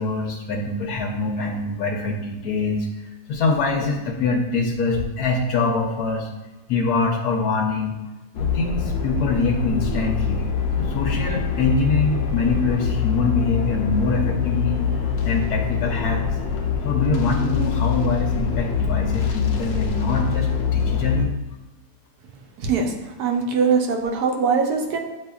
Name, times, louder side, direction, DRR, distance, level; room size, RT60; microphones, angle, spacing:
voice 1, 0.0-2.9 3.3-6.3 6.7-8.0 8.4-10.5 10.7-14.8 15.2-16.2 16.8-21.3, left 3 dB, 80° left, 0 dB, 1.1 m, -24 dB
sound 1, 8.3-21.3, left 6 dB, 65° left, 0.7 m, -24 dB
voice 2, 22.6-25.0, right 5 dB, 80° right, 1 dB, 1.3 m, -22 dB
8.0 x 2.9 x 2.3 m, 1.1 s
omnidirectional pair, 1.7 m